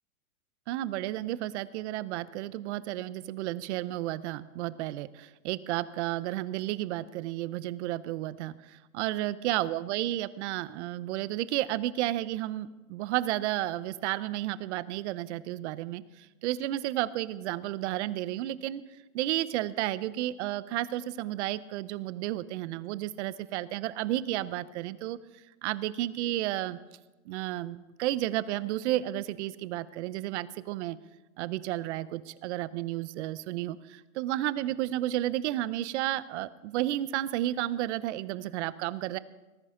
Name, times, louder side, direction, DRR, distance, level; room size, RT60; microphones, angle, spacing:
voice 1, 0.7-18.8 19.1-25.2 25.6-26.8 27.3-31.0 31.4-39.2, right 14 dB, 55° right, 16 dB, 0.8 m, -32 dB
19.0 x 14.0 x 3.8 m, 1.1 s
hypercardioid pair, 135°, 43 cm